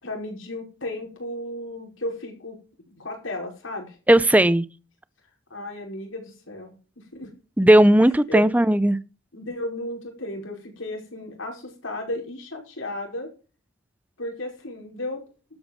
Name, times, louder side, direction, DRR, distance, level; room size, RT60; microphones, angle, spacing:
voice 1, 0.0-2.6 2.9-4.0 5.5-7.3 8.3-8.4 9.3-13.3 14.2-15.2, left 1 dB, 75° left, 5.2 m, -34 dB
voice 2, 4.1-4.6 7.6-9.0, right 1 dB, 5° right, 0.5 m, -16 dB
12.5 x 8.5 x 5.3 m
head